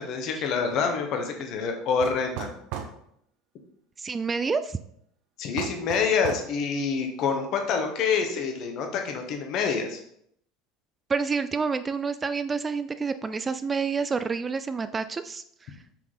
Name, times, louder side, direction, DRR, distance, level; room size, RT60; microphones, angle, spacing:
voice 1, 0.0-2.5 5.4-10.0, left 5 dB, 45° left, 4 dB, 1.2 m, -27 dB
sound 1, 2.0-3.0 5.6-6.5, right 8 dB, 55° right, 0.9 m, -35 dB
voice 2, 4.0-4.8 11.1-15.8, right 5 dB, 20° right, 11 dB, 0.3 m, -28 dB
6.0 x 4.6 x 3.9 m, 0.70 s
figure-of-eight pair, 70°, 0 cm